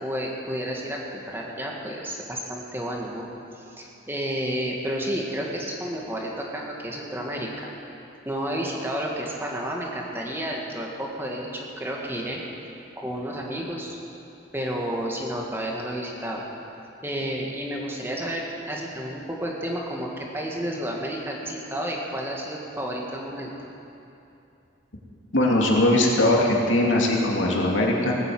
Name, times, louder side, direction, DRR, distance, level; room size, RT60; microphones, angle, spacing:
voice 1, 0.0-3.3 3.5-7.7 8.3-12.4 13.0-14.0 14.5-16.4 17.0-23.7, equal, 10° right, -2 dB, 1.9 m, -31 dB
voice 2, 25.3-28.1, left 1 dB, 90° left, -1 dB, 2.6 m, -20 dB
19.0 x 9.8 x 7.8 m, 2.7 s
head